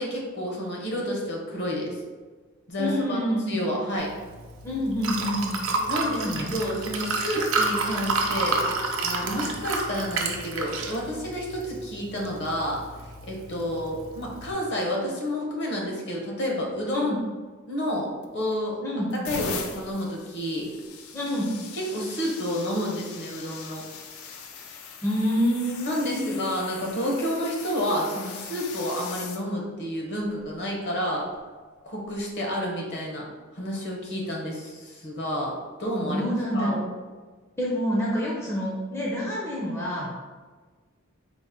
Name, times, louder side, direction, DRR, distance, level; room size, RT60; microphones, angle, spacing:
voice 1, 0.0-2.0 2.7-3.2 3.5-4.1 5.9-12.8 13.3-17.1 17.7-18.8 19.2-20.7 21.7-23.8 25.9-31.3 31.8-33.3 33.5-35.5 35.8-36.2 36.5-36.8, equal, 55° left, -1 dB, 0.8 m, -30 dB
voice 2, 2.8-3.7 4.6-5.7 6.1-6.7 16.9-17.2 18.8-19.1 21.1-21.5 25.0-26.5 36.0-36.9 37.6-40.1, equal, 10° left, -4 dB, 0.5 m, -27 dB
Liquid, 4.0-14.5, right 3 dB, 65° right, 0.5 m, -30 dB
sound 1, 18.2-18.6 19.1-29.4 30.3-30.5 32.1-32.2, left 5 dB, 75° left, 0.4 m, -40 dB
4.0 x 2.1 x 3.5 m, 1.4 s
head